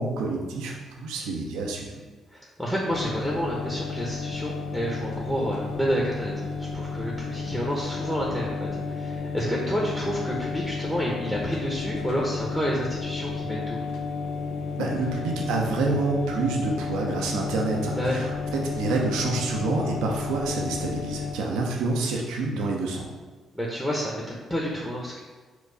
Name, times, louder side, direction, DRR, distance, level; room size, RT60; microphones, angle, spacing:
voice 1, 0.0-1.9 14.8-23.1, right 3 dB, 80° right, 0 dB, 0.6 m, -28 dB
voice 2, 2.3-13.8 18.0-18.2 23.5-25.2, equal, ahead, -4 dB, 0.9 m, -29 dB
sound 1, 2.9-21.3, left 4 dB, 70° left, 0.5 m, -32 dB
4.5 x 2.3 x 3.9 m, 1.4 s
hypercardioid pair, 50°, 0 cm